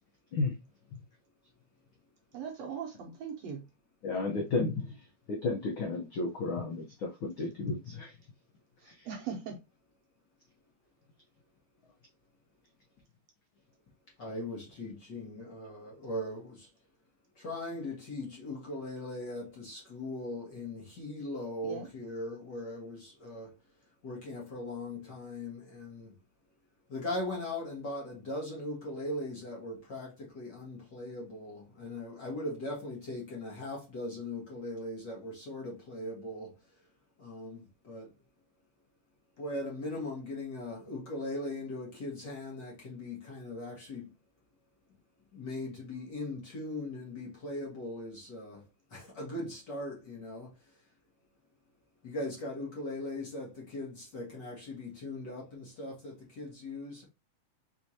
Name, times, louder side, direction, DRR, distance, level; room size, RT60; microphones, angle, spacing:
voice 1, 2.3-3.6 8.8-9.5 21.6-21.9, right 6 dB, 70° right, 1.8 m, -40 dB
voice 2, 4.0-5.0 5.3-8.1 8.8-9.1, left 3 dB, 75° left, 1.1 m, -33 dB
voice 3, 14.2-16.7 17.4-23.5 24.0-26.1 26.9-36.5 37.2-38.1 39.4-44.1 45.3-48.6 48.9-50.5 52.0-57.0, left 1 dB, 45° left, 1.6 m, -39 dB
4.9 x 3.6 x 2.8 m
omnidirectional pair, 3.7 m